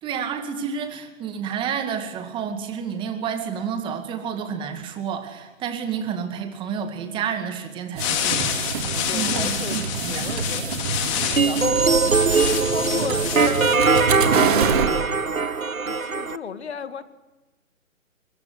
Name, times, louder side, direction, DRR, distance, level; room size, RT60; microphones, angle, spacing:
voice 1, 0.0-8.5 8.9-10.2, right 7 dB, 10° right, 7 dB, 2.2 m, -30 dB
sound 1, 8.0-13.8, left 10 dB, 25° left, 2.5 m, -28 dB
sound 2, 8.0-14.9, right 6 dB, 40° right, 2.9 m, -27 dB
voice 2, 9.1-9.8 10.1-11.8 12.5-14.0 14.4-14.9 15.8-17.0, left 7 dB, 50° left, 11 dB, 2.1 m, -34 dB
sound 3, 11.4-16.4, right 4 dB, 90° right, 1.4 m, -21 dB
24.0 x 22.0 x 8.2 m, 1.1 s
figure-of-eight pair, 140°, 40 cm